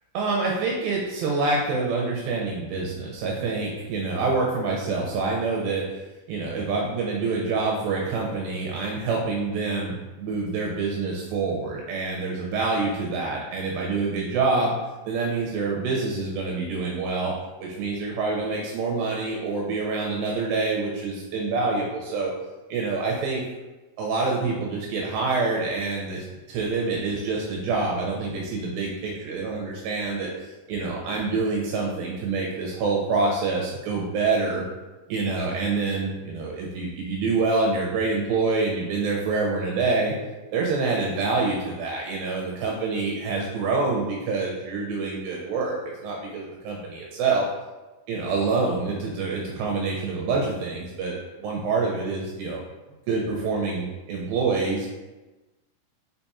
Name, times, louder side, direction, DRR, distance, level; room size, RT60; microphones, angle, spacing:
voice 1, 0.1-6.0 6.3-14.8 15.1-17.3 17.6-22.3 22.7-23.4 24.0-34.6 35.1-40.1 40.5-47.5 48.1-51.1 51.4-52.6 53.1-54.9, right 3 dB, 80° right, -2 dB, 2.4 m, -26 dB
5.6 x 4.1 x 2.3 m, 1.1 s
omnidirectional pair, 4.2 m